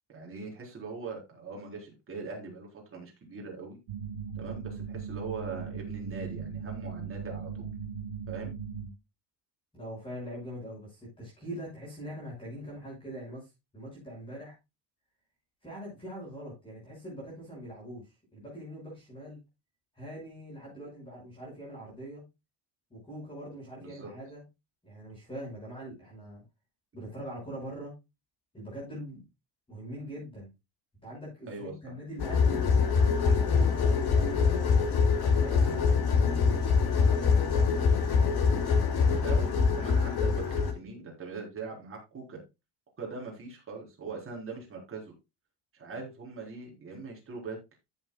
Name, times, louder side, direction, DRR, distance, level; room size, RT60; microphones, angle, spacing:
voice 1, 0.1-3.8 4.3-7.7 8.3-8.5 23.8-24.1 31.5-31.9 39.2-42.4 43.0-45.1 45.7-47.6, right 4 dB, 30° right, -1 dB, 4.3 m, -41 dB
sound 1, 3.9-8.9, right 6 dB, 60° right, 1.3 m, -38 dB
voice 2, 9.7-13.5 13.7-14.5 15.6-19.4 19.9-22.2 22.9-24.4 24.8-26.4 26.9-27.9 28.5-29.2 29.7-30.5 31.0-32.7 33.2-34.7 35.4-36.5 36.9-38.3 38.9-39.2, equal, 10° left, -4 dB, 5.9 m, -43 dB
sound 2, 32.2-40.7, left 5 dB, 55° left, 2.6 m, -24 dB
14.0 x 7.4 x 2.3 m, 0.24 s
cardioid pair, 170°, 44 cm